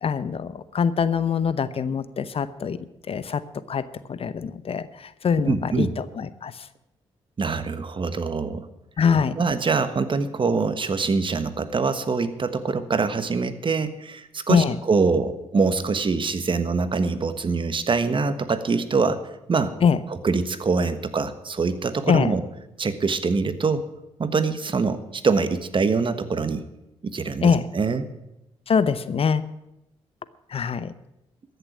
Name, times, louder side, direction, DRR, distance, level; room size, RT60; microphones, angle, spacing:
voice 1, 0.0-2.8 3.1-3.4 3.7-6.7 9.0-9.3 14.5-14.8 19.8-20.0 22.1-22.3 27.4-27.7 28.7-29.4 30.5-30.9, left 6 dB, 55° left, 15 dB, 0.8 m, -23 dB
voice 2, 5.4-5.9 7.4-8.7 9.4-19.2 19.5-19.7 20.1-22.4 22.8-23.9 24.2-26.6 27.0-28.1, right 4 dB, 45° right, 11 dB, 1.4 m, -24 dB
14.0 x 7.0 x 9.5 m, 0.89 s
supercardioid pair, 50°, 12 cm